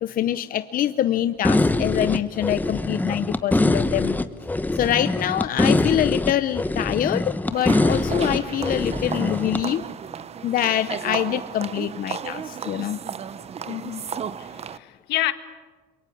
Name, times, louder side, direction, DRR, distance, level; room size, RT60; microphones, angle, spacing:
voice 1, 0.0-4.2 4.7-9.8 10.4-13.0, left 11 dB, 55° left, 0.7 m, -25 dB
sound 1, 1.4-9.6, left 2 dB, 10° left, 1.0 m, -23 dB
sound 2, 7.5-14.8, right 7 dB, 40° right, 0.8 m, -34 dB
voice 2, 13.7-15.3, left 15 dB, 80° left, 1.7 m, -29 dB
27.5 x 23.0 x 8.5 m
cardioid pair, 110°, 17 cm